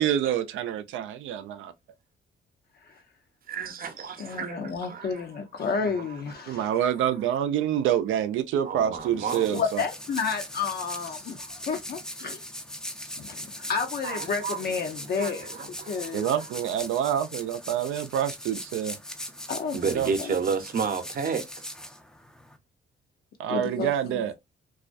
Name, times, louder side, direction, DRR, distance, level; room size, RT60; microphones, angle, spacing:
voice 1, 0.0-1.7 6.5-9.8 16.1-19.0 19.9-20.1 23.4-24.3, right 10 dB, 80° right, 0.4 m, -27 dB
voice 2, 3.5-5.2 5.8-6.1 6.5-6.6 8.6-9.6 14.0-14.6 15.2-16.5 19.7-21.6, right 6 dB, 50° right, 0.7 m, -32 dB
voice 3, 4.2-6.7 9.5-12.5 13.2-16.3 19.5-19.8 20.2-20.4 23.5-24.2, left 5 dB, 50° left, 0.6 m, -31 dB
sound 1, 9.0-22.6, equal, 5° left, 0.4 m, -40 dB
2.4 x 2.2 x 2.5 m
cardioid pair, 90°, 20 cm